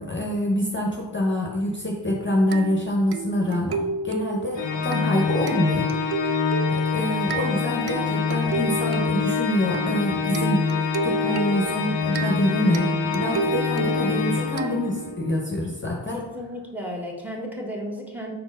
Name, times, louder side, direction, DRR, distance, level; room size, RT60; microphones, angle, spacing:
voice 1, 0.0-5.9 6.7-10.7 11.0-16.2, left 1 dB, 25° left, -1 dB, 0.8 m, -25 dB
sound 1, 2.5-15.3, right 4 dB, 60° right, 0.5 m, -32 dB
Organ, 4.6-15.2, left 5 dB, 80° left, 0.6 m, -26 dB
voice 2, 16.1-18.3, equal, 5° right, 0 dB, 1.3 m, -33 dB
4.4 x 4.1 x 5.3 m, 1.1 s
wide cardioid pair, 65°, 44 cm